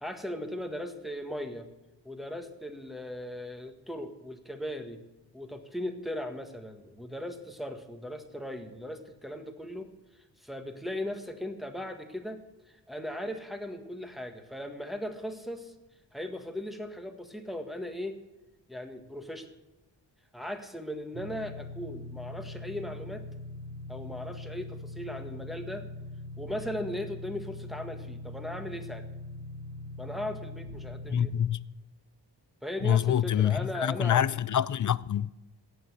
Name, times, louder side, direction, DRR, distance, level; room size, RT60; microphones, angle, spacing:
voice 1, 0.0-1.6 2.0-5.0 5.3-9.9 10.4-15.7 16.1-18.2 18.7-19.5 20.3-23.3 23.9-25.9 26.4-29.1 30.0-31.3 32.6-34.3, left 1 dB, ahead, 1.7 m, -38 dB
sound 1, 21.1-31.4, left 2 dB, 40° right, 1.4 m, -42 dB
voice 2, 31.1-31.6 32.8-35.3, left 10 dB, 45° left, 0.5 m, -26 dB
17.0 x 6.9 x 8.1 m
wide cardioid pair, 95°, 43 cm